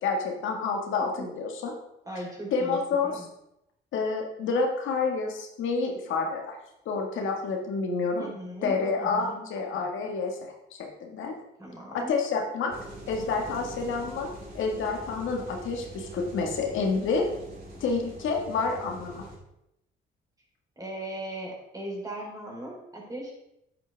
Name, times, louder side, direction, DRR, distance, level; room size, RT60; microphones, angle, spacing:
voice 1, 0.0-1.7 2.5-3.2 3.9-6.6 6.9-8.3 8.6-10.4 10.8-11.3 11.9-12.7 13.1-14.3 14.5-17.3 17.8-19.3, left 4 dB, 80° left, 1 dB, 1.7 m, -28 dB
voice 2, 2.1-2.8 3.0-3.3 8.2-9.5 11.6-12.2 20.8-23.3, right 1 dB, 20° right, -2 dB, 3.8 m, -38 dB
sound 1, 12.7-19.3, right 2 dB, 50° right, 3.9 m, -44 dB
8.9 x 8.9 x 3.4 m, 0.83 s
cardioid pair, 90°, 20 cm